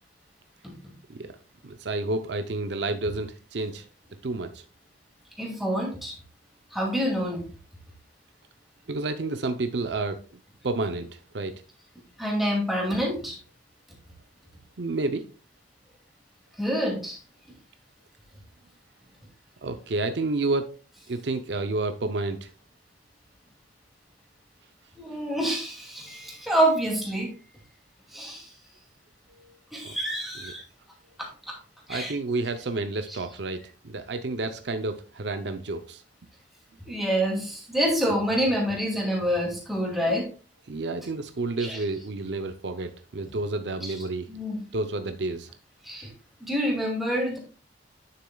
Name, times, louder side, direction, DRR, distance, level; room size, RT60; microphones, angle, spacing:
voice 1, 1.6-3.8 4.2-4.6 8.9-10.2 10.6-11.5 14.8-15.3 19.6-20.7 21.1-22.5 29.4-29.5 29.8-29.9 30.4-30.5 31.9-36.0 40.0-40.1 40.7-44.3 44.7-45.5, right 2 dB, 65° right, 0.6 m, -30 dB
voice 2, 5.4-6.2 6.7-7.5 12.2-13.4 16.6-17.2 25.0-27.3 28.1-28.5 29.7-30.6 31.2-31.6 31.9-32.1 33.1-33.2 36.9-40.3 41.6-41.8 43.8-43.9 44.3-44.6 45.8-46.1 46.4-47.4, equal, ahead, 2.4 m, -27 dB
9.5 x 6.8 x 2.3 m
head